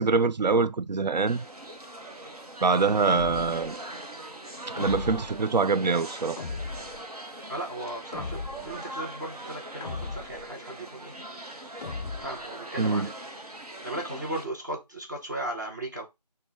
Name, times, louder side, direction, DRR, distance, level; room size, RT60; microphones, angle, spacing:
voice 1, 0.0-1.4 2.6-3.8 4.7-6.4 12.8-13.1, right 4 dB, 80° right, 0.4 m, -24 dB
sound 1, 1.3-14.4, right 1 dB, 60° right, 0.8 m, -41 dB
sound 2, 3.1-3.7 4.8-5.4 6.4-7.0 8.1-8.8 9.8-10.5 11.8-12.5, left 4 dB, 65° left, 0.4 m, -37 dB
voice 2, 7.5-11.1 12.2-13.1 13.8-16.1, right 1 dB, 25° right, 0.8 m, -36 dB
3.7 x 2.2 x 4.5 m
figure-of-eight pair, 170°, 21 cm